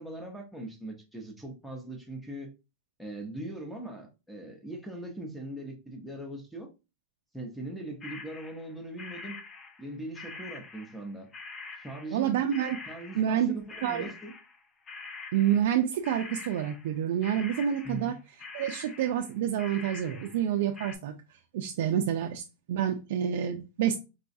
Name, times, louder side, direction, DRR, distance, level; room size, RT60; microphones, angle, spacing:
voice 1, 0.0-2.5 3.0-6.7 7.3-9.4 9.8-11.3 11.8-12.4 12.9-14.3 17.8-18.1, right 1 dB, ahead, 0.7 m, -40 dB
sound 1, 8.0-8.7 9.0-11.1 11.3-20.5 20.7-21.0, left 4 dB, 20° left, 0.3 m, -45 dB
voice 2, 12.1-12.8 13.1-13.6 13.8-14.0 15.3-18.1 18.5-24.0, right 10 dB, 60° right, 0.4 m, -28 dB
3.9 x 2.3 x 2.6 m
supercardioid pair, 160°, 0 cm